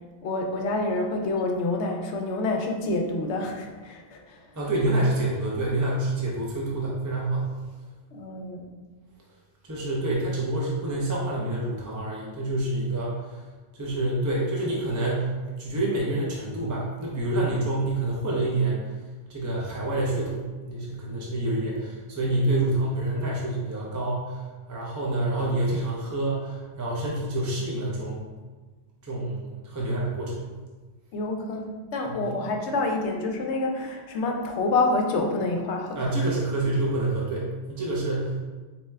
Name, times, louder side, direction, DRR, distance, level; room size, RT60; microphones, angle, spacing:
voice 1, 0.2-4.4 8.1-8.7 31.1-36.0, left 2 dB, 80° left, 3 dB, 0.9 m, -27 dB
voice 2, 4.6-7.5 9.6-13.4 13.7-15.3 15.6-18.8 19.3-24.4 24.7-28.2 29.0-30.5 32.1-32.2 35.9-38.4, right 2 dB, 25° right, -4 dB, 0.4 m, -27 dB
4.3 x 2.2 x 3.3 m, 1.3 s
omnidirectional pair, 1.2 m